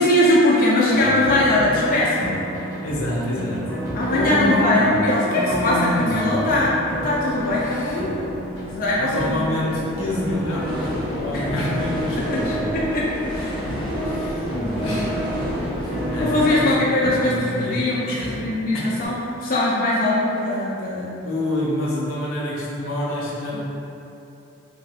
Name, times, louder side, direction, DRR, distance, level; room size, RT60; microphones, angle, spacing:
voice 1, 0.0-2.4 3.9-9.6 11.3-11.5 12.1-13.7 14.0-14.3 14.5-15.0 16.2-21.2, left 1 dB, 45° left, -7 dB, 0.4 m, -21 dB
sound 1, 0.9-19.1, equal, 15° left, 0.7 m, -30 dB
voice 2, 2.8-3.7 4.1-4.9 5.3-6.0 7.6-8.0 9.0-12.6 14.0-14.5 14.8-15.1 15.8-18.3 21.2-23.6, left 1 dB, 85° left, -4 dB, 0.6 m, -27 dB
sound 2, 7.0-16.6, equal, 20° right, 0.7 m, -31 dB
2.7 x 2.4 x 3.3 m, 2.8 s
head